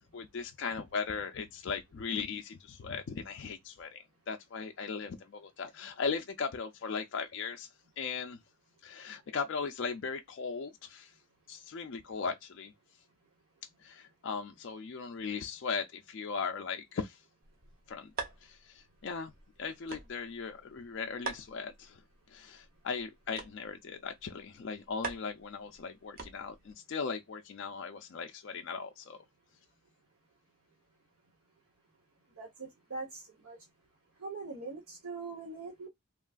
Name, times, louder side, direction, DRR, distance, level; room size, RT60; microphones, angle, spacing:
voice 1, 0.1-7.7 8.0-8.4 8.8-11.1 11.5-12.7 13.8-17.2 17.9-18.1 18.4-19.3 19.6-22.0 22.3-29.2, left 5 dB, 55° left, 0.4 m, -38 dB
sound 1, 17.4-26.7, right 4 dB, 40° right, 0.6 m, -46 dB
voice 2, 32.4-33.6 34.2-35.9, right 3 dB, 85° right, 0.9 m, -42 dB
3.0 x 2.3 x 2.3 m
head